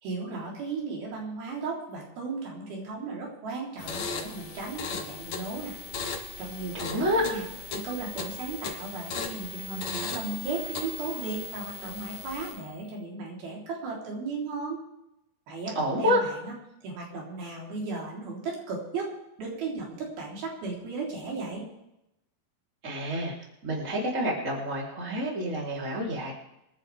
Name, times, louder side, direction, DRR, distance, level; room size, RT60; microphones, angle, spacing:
voice 1, 0.0-5.8 6.4-7.5 7.7-14.8 15.5-16.5 16.8-19.1 19.4-21.7, right 4 dB, 85° right, -3 dB, 5.5 m, -36 dB
sound 1, 3.8-12.7, left 5 dB, 55° left, 2.5 m, -37 dB
voice 2, 6.7-7.2 15.8-16.2 22.8-23.3 23.6-26.3, equal, 20° right, -3 dB, 3.7 m, -28 dB
27.0 x 10.5 x 3.5 m, 0.87 s
omnidirectional pair, 4.2 m